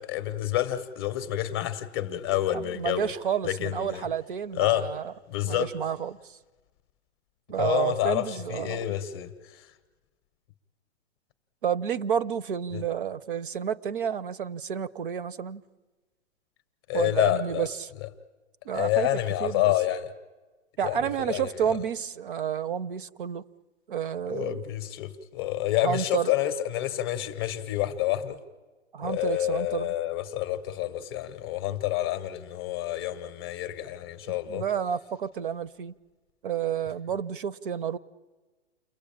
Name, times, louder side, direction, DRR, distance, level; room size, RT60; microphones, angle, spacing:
voice 1, 0.0-3.1 3.4-4.0 4.6-4.9 5.3-5.7 7.6-9.3 12.7-12.8 16.9-17.6 18.7-20.1 20.8-21.6 24.3-28.4 29.0-34.6, left 14 dB, 20° left, 0.8 m, -28 dB
voice 2, 2.5-5.1 5.4-6.4 7.5-8.8 11.6-15.6 16.9-17.9 18.6-19.7 20.8-23.4 23.9-24.6 25.8-26.3 28.9-29.9 34.3-35.9 36.4-38.0, right 8 dB, 45° right, 0.8 m, -30 dB
29.0 x 22.0 x 8.8 m
hypercardioid pair, 165°, 36 cm